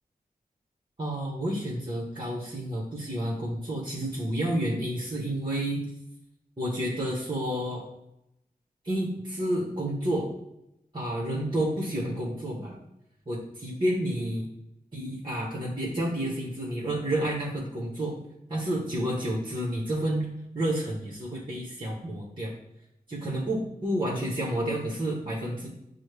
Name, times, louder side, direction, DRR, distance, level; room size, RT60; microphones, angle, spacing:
voice 1, 1.0-5.8 6.6-7.9 8.8-10.3 10.9-12.8 13.3-14.5 14.9-18.2 18.5-20.3 20.5-22.5 23.1-25.7, right 1 dB, 30° right, -4 dB, 1.0 m, -30 dB
6.1 x 2.1 x 3.3 m, 0.85 s
cardioid pair, 55°, 16 cm